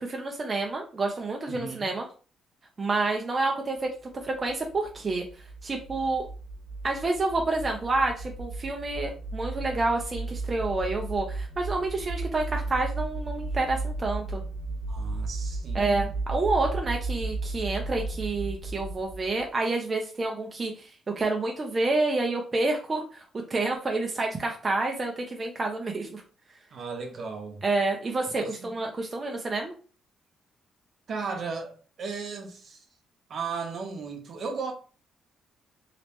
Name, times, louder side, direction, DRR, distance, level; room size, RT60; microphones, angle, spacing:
voice 1, 0.0-2.1 2.8-3.9 4.2-5.3 5.6-6.3 6.8-14.4 15.7-20.9 21.2-23.2 23.5-26.2 27.6-29.7, right 2 dB, 30° right, 0.6 m, -28 dB
voice 2, 1.5-1.9 14.9-16.1 26.7-27.6 28.4-28.7 31.1-32.8 33.3-34.7, right 4 dB, 55° right, 0.8 m, -35 dB
sound 1, 4.2-19.5, right 3 dB, 80° right, 0.4 m, -34 dB
3.2 x 2.9 x 2.9 m
cardioid pair, 120°, 0 cm